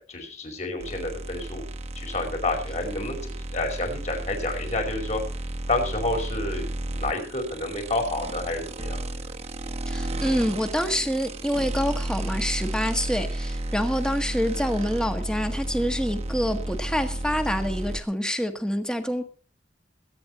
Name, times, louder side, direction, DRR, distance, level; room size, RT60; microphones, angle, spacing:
voice 1, 0.0-1.6 2.0-5.2 5.7-6.7 6.9-9.0, left 2 dB, 40° left, 3 dB, 5.2 m, -29 dB
sound 1, 0.8-18.0, right 1 dB, 35° right, 1.3 m, -32 dB
voice 2, 9.9-19.2, equal, 5° left, 7 dB, 1.5 m, -27 dB
21.5 x 9.8 x 4.2 m, 0.38 s
head